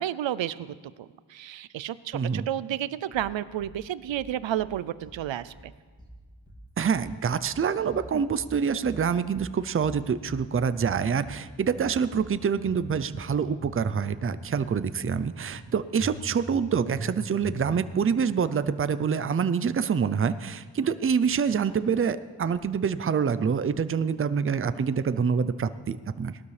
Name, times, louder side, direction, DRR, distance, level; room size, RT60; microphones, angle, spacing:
voice 1, 0.0-5.7, right 11 dB, 90° right, 17 dB, 0.5 m, -31 dB
voice 2, 2.1-2.5 6.8-26.4, right 6 dB, 30° right, 13 dB, 0.5 m, -26 dB
sound 1, 3.1-3.7 4.1-4.7 5.0-5.7 6.0-6.7 6.9-7.6 7.9-8.6 8.8-9.5 9.8-10.5 10.7-11.4 11.7-12.4 12.7-13.3 13.6-14.3 14.6-15.2 15.5-15.6 16.0-16.6 16.9-17.1 17.4-17.9, right 1 dB, 10° right, 2.4 m, -43 dB
18.0 x 12.5 x 3.3 m, 1.5 s
wide cardioid pair, 70°, 44 cm